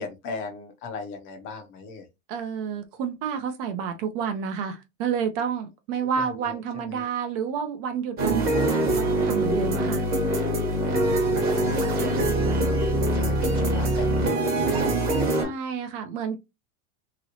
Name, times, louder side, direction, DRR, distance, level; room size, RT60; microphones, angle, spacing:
voice 1, 0.0-2.0 6.2-7.0 10.9-15.5, left 4 dB, 30° left, 0.6 m, -38 dB
voice 2, 2.3-10.0 12.0-12.6 15.4-16.4, right 7 dB, 45° right, 0.5 m, -30 dB
sound 1, 8.2-15.4, right 1 dB, 25° right, 0.9 m, -23 dB
3.0 x 2.8 x 2.7 m
supercardioid pair, 160°, 40 cm